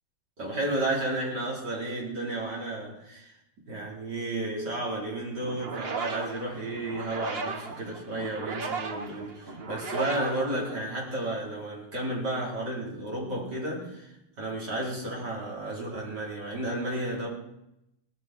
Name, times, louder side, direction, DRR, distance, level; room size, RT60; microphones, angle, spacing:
voice 1, 0.4-3.4 3.7-17.3, right 1 dB, 65° right, -4 dB, 5.3 m, -32 dB
sound 1, 5.4-11.2, right 4 dB, 40° right, 1.2 m, -36 dB
19.5 x 14.0 x 4.7 m, 0.83 s
omnidirectional pair, 2.0 m